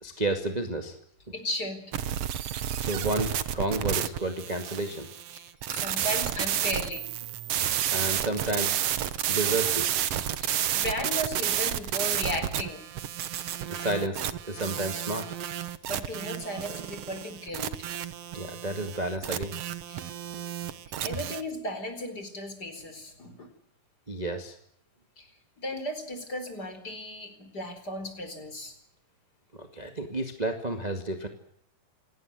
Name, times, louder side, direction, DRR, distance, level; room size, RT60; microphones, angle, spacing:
voice 1, 0.0-0.9 2.8-5.1 7.6-8.8 9.3-9.9 13.7-15.4 18.3-19.6 24.1-24.6 29.5-31.3, right 2 dB, 15° right, 5 dB, 1.7 m, -31 dB
voice 2, 1.3-1.9 5.3-7.1 10.4-12.8 15.8-17.9 19.9-20.1 20.9-23.5 25.2-25.3 25.6-28.7, equal, 30° left, 9 dB, 4.6 m, -35 dB
sound 1, 1.9-21.4, right 10 dB, 60° right, 1.8 m, -31 dB
28.0 x 19.0 x 7.8 m, 0.72 s
omnidirectional pair, 3.8 m